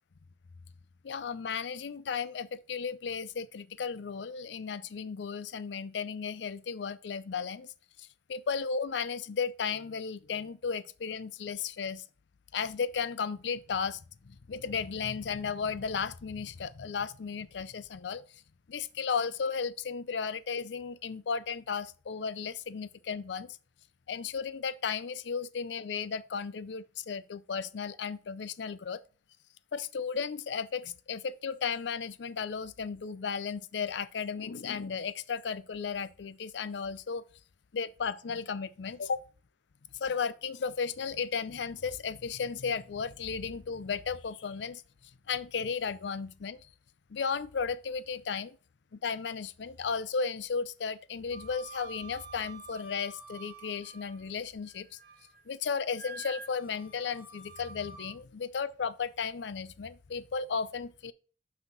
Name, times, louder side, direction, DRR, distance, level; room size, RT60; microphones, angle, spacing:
voice 1, 1.0-7.7 8.0-12.0 12.5-18.4 18.7-23.6 24.1-29.0 29.7-37.2 37.7-39.2 40.0-44.8 45.3-46.6 47.1-48.6 48.9-55.0 55.5-61.1, left 6 dB, 70° left, 0.5 m, -35 dB
Wind instrument woodwind instrument, 51.3-54.3 54.7-55.4 55.9-58.1, right 4 dB, 55° right, 1.4 m, -48 dB
5.9 x 5.7 x 3.9 m
head